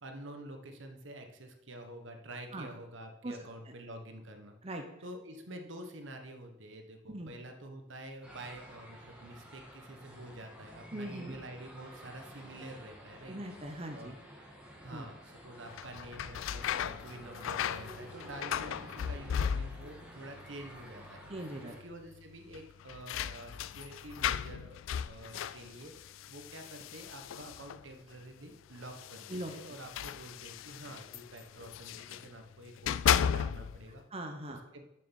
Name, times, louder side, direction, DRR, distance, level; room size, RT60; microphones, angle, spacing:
voice 1, 0.0-4.6 5.0-13.4 13.9-14.2 14.8-21.2 21.6-24.8 25.1-34.0 34.5-34.8, right 1 dB, 65° right, 5 dB, 1.3 m, -48 dB
sound 1, 8.2-21.8, equal, 5° right, 1.7 m, -52 dB
voice 2, 10.9-11.4 13.3-14.2 14.9-15.1 21.3-21.7 29.3-29.5 34.1-34.6, right 1 dB, 30° right, 3 dB, 0.9 m, -40 dB
sound 2, 15.7-20.1 20.3-21.0 21.3-21.4 22.5-27.9 28.8-32.3 32.7-33.9, left 8 dB, 75° left, 0.3 m, -36 dB
7.1 x 6.7 x 7.0 m, 0.87 s
head